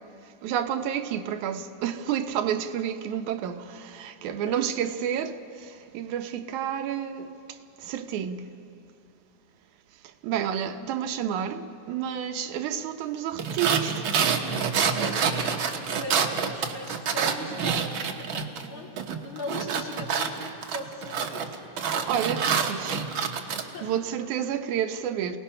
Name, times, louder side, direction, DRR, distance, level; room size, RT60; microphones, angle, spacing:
voice 1, 0.4-8.5 10.2-14.1 22.0-23.0 23.3-25.4, right 9 dB, 90° right, 2.3 m, -30 dB
voice 2, 4.3-4.6 15.0-18.9 19.2-21.4 23.6-23.9, left 1 dB, 45° left, 3.7 m, -39 dB
sound 1, 13.4-18.7 19.0-23.6, right 6 dB, 60° right, 1.5 m, -27 dB
28.0 x 18.5 x 5.6 m
omnidirectional pair, 3.3 m